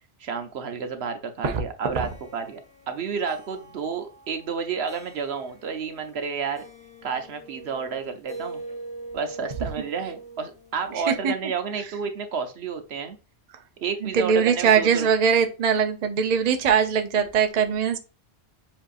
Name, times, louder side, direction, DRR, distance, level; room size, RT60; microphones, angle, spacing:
voice 1, 0.2-6.6 7.0-8.6 9.1-13.2 13.8-15.1, right 6 dB, 65° right, 7 dB, 1.0 m, -31 dB
sound 1, 2.0-6.3 6.6-11.2, right 2 dB, 5° left, 1.3 m, -43 dB
voice 2, 10.9-11.3 14.0-18.0, right 6 dB, 45° right, 7 dB, 0.6 m, -21 dB
7.2 x 2.7 x 2.4 m, 0.33 s
omnidirectional pair, 1.2 m